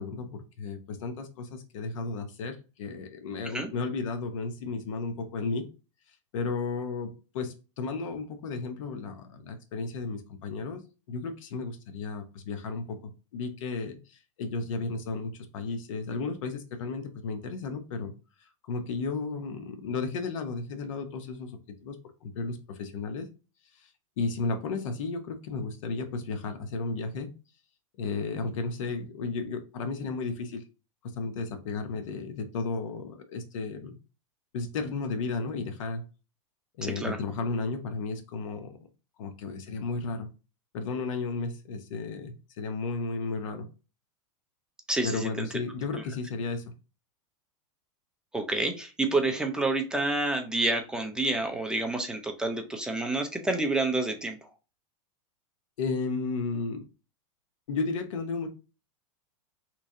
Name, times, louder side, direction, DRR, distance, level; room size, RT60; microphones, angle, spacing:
voice 1, 0.0-5.7 6.3-10.8 11.1-18.1 18.7-22.0 22.2-23.3 23.8-23.9 24.2-27.3 28.0-30.6 31.0-34.0 34.5-36.0 36.8-38.8 39.2-40.3 40.7-43.7 45.0-46.6 55.8-56.8 57.7-58.5, left 4 dB, 75° left, 7 dB, 0.8 m, -33 dB
voice 2, 36.8-37.2 44.9-45.5 48.3-54.4, right 2 dB, 5° right, 4 dB, 0.4 m, -28 dB
3.0 x 2.6 x 3.6 m, 0.32 s
supercardioid pair, 140°, 17 cm